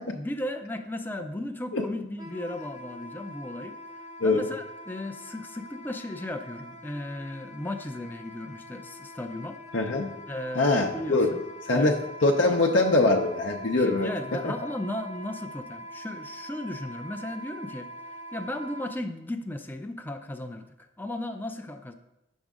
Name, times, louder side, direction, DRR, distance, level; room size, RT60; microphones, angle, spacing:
voice 1, 0.1-3.8 4.2-9.6 10.3-11.9 13.8-17.9 18.3-21.9, left 1 dB, 10° left, 5 dB, 0.4 m, -35 dB
Wind instrument woodwind instrument, 2.2-18.9, equal, 20° right, 0.8 m, -44 dB
voice 2, 9.7-10.1 10.6-11.3 11.7-12.0 12.2-14.1, left 2 dB, 60° left, 0 dB, 0.6 m, -22 dB
9.0 x 6.3 x 3.6 m, 0.91 s
head